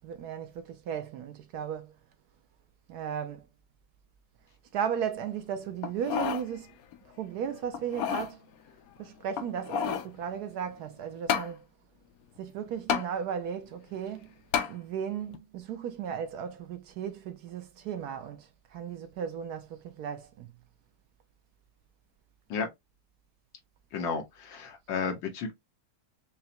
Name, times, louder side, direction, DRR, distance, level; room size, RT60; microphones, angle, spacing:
voice 1, 0.0-1.9 2.9-3.4 4.7-6.7 7.2-8.4 9.0-11.6 12.4-14.3 14.7-20.5, right 8 dB, 70° right, 1.0 m, -35 dB
sound 1, 5.8-6.5 6.9-7.0 7.7-8.3 9.3-10.1 11.3-11.5 12.9-13.1 14.5-14.7 15.3-15.4, left 8 dB, 70° left, 0.9 m, -30 dB
voice 2, 23.9-25.5, left 5 dB, 90° left, 1.8 m, -32 dB
5.6 x 2.2 x 2.7 m
omnidirectional pair, 2.0 m